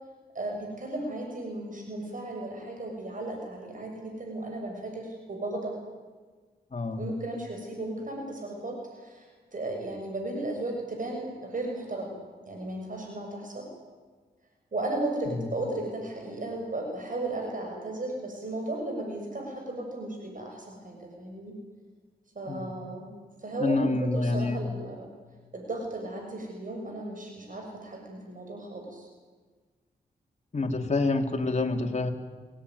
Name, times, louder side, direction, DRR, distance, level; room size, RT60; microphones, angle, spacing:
voice 1, 0.3-5.8 7.0-12.2 12.5-13.7 14.7-21.5 22.3-23.1 23.4-25.1 25.5-29.1, right 2 dB, 50° right, 2 dB, 6.6 m, -35 dB
voice 2, 6.7-7.1 15.3-15.5 22.5-22.9 23.6-24.6 30.5-32.1, left 3 dB, 40° left, 3 dB, 3.5 m, -27 dB
25.0 x 19.5 x 9.8 m, 1.4 s
cardioid pair, 55°, 17 cm